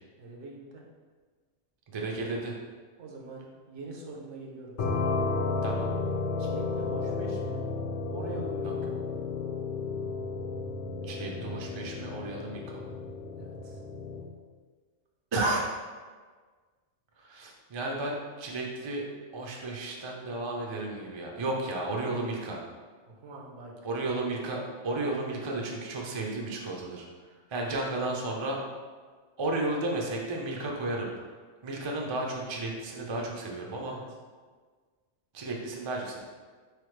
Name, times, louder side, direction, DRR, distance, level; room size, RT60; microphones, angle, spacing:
voice 1, 0.2-0.8 3.0-5.1 6.4-7.6 8.1-9.1 13.4-13.8 23.1-23.7 33.8-34.2, right 2 dB, 75° right, -1 dB, 1.1 m, -43 dB
voice 2, 1.9-2.5 5.6-5.9 8.6-8.7 11.0-12.9 15.3-15.7 17.2-19.0 19.3-22.6 23.8-27.0 27.5-28.6 29.4-31.1 31.6-34.0 35.3-36.2, right 2 dB, 40° right, -1 dB, 0.4 m, -33 dB
sound 1, 4.8-14.3, left 3 dB, 60° left, 0.6 m, -33 dB
4.2 x 3.3 x 3.2 m, 1.5 s
omnidirectional pair, 1.2 m